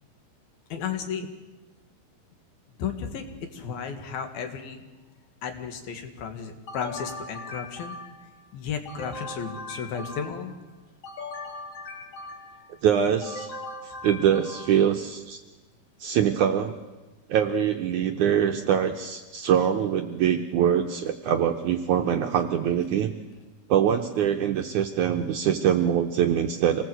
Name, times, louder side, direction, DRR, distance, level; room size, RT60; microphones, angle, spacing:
voice 1, 0.7-1.3 2.8-4.8 5.4-8.0 8.5-10.5, left 7 dB, 70° left, 6 dB, 3.7 m, -34 dB
sound 1, 6.7-8.3 8.9-10.6 11.0-12.7 13.2-14.9, left 2 dB, 40° left, 3.4 m, -39 dB
voice 2, 12.8-13.5 14.0-15.4 16.0-16.8 17.3-23.1 23.7-26.8, right 9 dB, 75° right, 5 dB, 1.9 m, -23 dB
26.5 x 19.0 x 7.9 m, 1.2 s
omnidirectional pair, 4.5 m